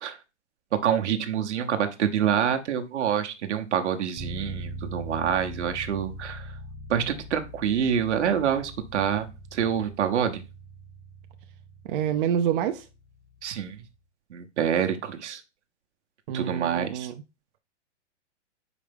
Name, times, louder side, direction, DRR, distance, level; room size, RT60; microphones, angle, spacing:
voice 1, 0.7-6.5 6.9-10.4 13.4-13.8 14.3-15.4 16.3-17.1, right 8 dB, 75° right, 1.0 m, -27 dB
sound 1, 4.2-13.9, right 1 dB, 10° right, 0.6 m, -41 dB
voice 2, 11.8-12.9 16.3-17.1, right 9 dB, 50° right, 0.6 m, -27 dB
5.5 x 5.0 x 3.5 m
hypercardioid pair, 125°, 35 cm